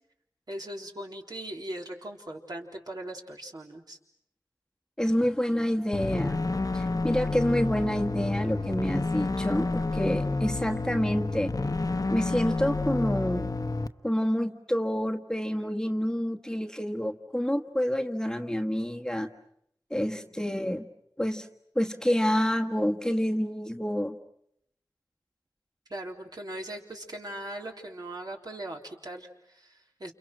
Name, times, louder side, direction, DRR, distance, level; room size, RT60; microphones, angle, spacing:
voice 1, 0.5-4.0 20.1-20.5 25.9-30.1, right 1 dB, 60° right, 1 dB, 3.7 m, -40 dB
voice 2, 5.0-11.5 12.1-13.5 14.0-19.3 19.9-20.9 21.2-21.5 21.7-24.2, equal, 10° left, 2 dB, 1.4 m, -28 dB
sound 1, 5.9-13.9, left 3 dB, 50° left, 1.0 m, -29 dB
29.5 x 29.0 x 6.2 m, 0.73 s
wide cardioid pair, 65°, 8 cm